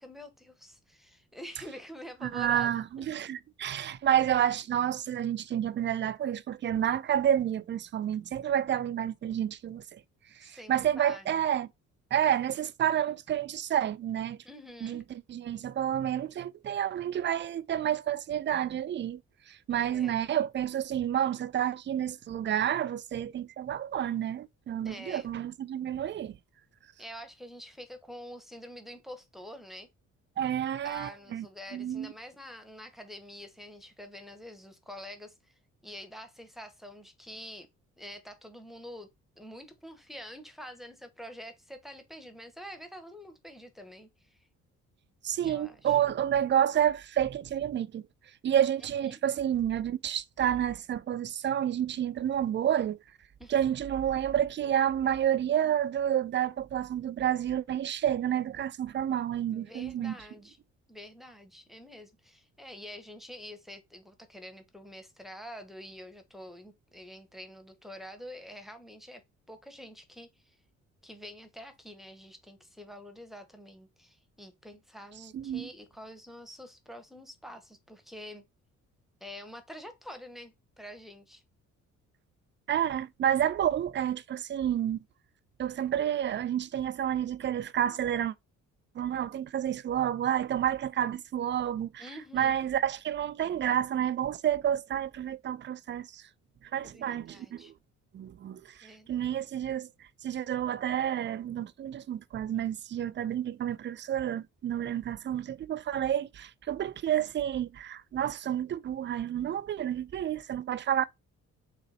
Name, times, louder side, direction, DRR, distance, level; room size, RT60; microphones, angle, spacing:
voice 1, 0.0-3.1 10.4-11.3 14.4-15.0 19.7-20.1 24.8-25.3 27.0-29.9 30.8-35.5 35.8-37.7 38.0-39.1 39.4-44.4 45.4-46.0 49.0-49.2 53.4-53.5 59.5-60.6 60.9-69.2 69.5-70.6 71.0-78.4 79.2-81.4 92.0-92.6 96.8-97.7 98.8-99.2, equal, ahead, 0.9 m, -47 dB
voice 2, 2.2-10.0 10.4-11.7 12.1-14.4 14.8-19.2 19.5-26.4 30.4-31.5 31.7-32.1 45.2-48.0 48.4-53.0 53.5-60.1 75.3-75.7 82.7-85.0 85.6-88.3 89.0-92.0 92.3-96.2 96.7-97.7 98.1-99.9 100.2-111.0, right 10 dB, 40° right, 0.4 m, -29 dB
4.0 x 2.6 x 4.1 m
cardioid pair, 90°, 30 cm